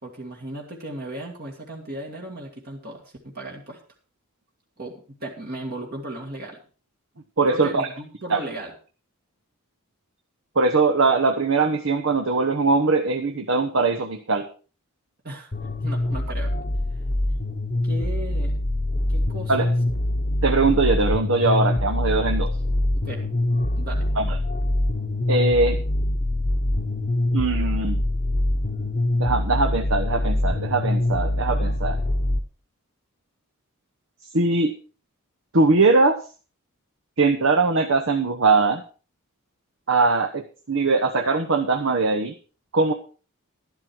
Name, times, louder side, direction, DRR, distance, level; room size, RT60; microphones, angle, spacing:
voice 1, 0.0-3.8 4.8-6.6 7.4-8.7 15.2-15.5 15.8-16.5 17.8-18.5 19.1-19.7 23.0-23.2 23.8-24.1, right 1 dB, 45° right, 1 dB, 2.0 m, -36 dB
voice 2, 7.4-7.9 8.3-8.4 10.5-14.5 19.5-19.7 20.4-22.5 24.2-24.4 25.3-25.8 27.3-28.0 29.2-32.0 34.3-34.7 35.5-36.2 37.2-38.8 39.9-42.3 42.7-42.9, right 3 dB, 60° right, 7 dB, 1.1 m, -21 dB
sound 1, 15.5-32.4, left 1 dB, 40° left, 1.0 m, -24 dB
12.0 x 11.5 x 4.6 m, 0.37 s
head